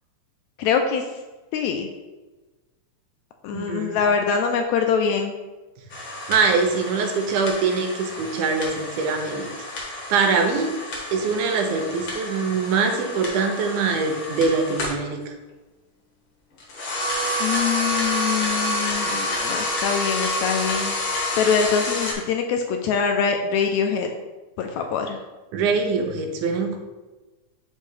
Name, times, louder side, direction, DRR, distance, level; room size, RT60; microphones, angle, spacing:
voice 1, 0.6-1.0 1.5-1.9 3.4-5.3 17.4-20.9 21.4-24.1 24.6-25.2, left 6 dB, 80° left, 4 dB, 1.7 m, -24 dB
voice 2, 3.5-4.0 6.3-9.5 10.1-10.7 11.1-15.2 25.5-26.8, right 4 dB, 80° right, 4 dB, 2.2 m, -23 dB
sound 1, 5.9-15.0 16.6-22.1, left 1 dB, 50° left, 2.0 m, -29 dB
7.2 x 5.4 x 3.2 m, 1.2 s
omnidirectional pair, 3.6 m